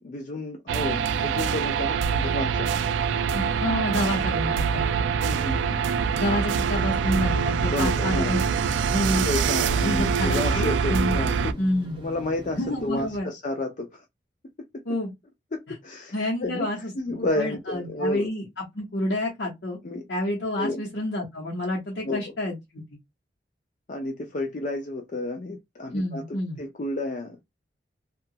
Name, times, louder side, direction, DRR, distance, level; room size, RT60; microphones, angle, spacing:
voice 1, 0.0-2.7 4.3-4.4 5.2-5.8 7.7-8.3 9.2-11.6 12.0-14.0 14.6-14.8 15.5-16.7 16.9-18.3 19.8-20.1 20.6-20.8 22.0-22.3 23.9-27.6, left 1 dB, 45° left, 0.4 m, -31 dB
sound 1, 0.7-11.5, right 6 dB, 90° right, 0.3 m, -24 dB
voice 2, 3.3-4.9 6.2-8.4 8.9-9.3 9.8-11.2 11.6-12.0 12.5-13.3 14.9-15.1 16.1-16.9 17.4-19.8 20.1-22.8 25.9-26.6, left 1 dB, 75° left, 0.9 m, -28 dB
sound 2, 6.7-13.2, right 1 dB, 30° right, 0.6 m, -41 dB
2.7 x 2.3 x 2.7 m
head